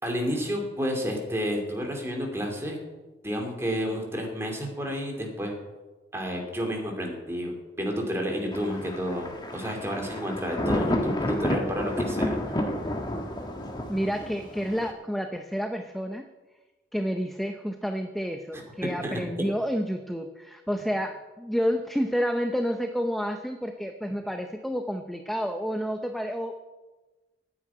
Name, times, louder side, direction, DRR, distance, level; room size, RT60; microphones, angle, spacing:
voice 1, 0.0-2.8 3.2-5.5 6.1-12.7 18.5-18.6 19.0-19.2, equal, 15° right, 1 dB, 2.7 m, -30 dB
Thunder, 8.5-14.9, left 1 dB, 25° left, 1.5 m, -30 dB
voice 2, 13.9-16.3 16.9-26.6, equal, ahead, 6 dB, 0.6 m, -29 dB
9.6 x 9.4 x 9.5 m, 1.2 s
head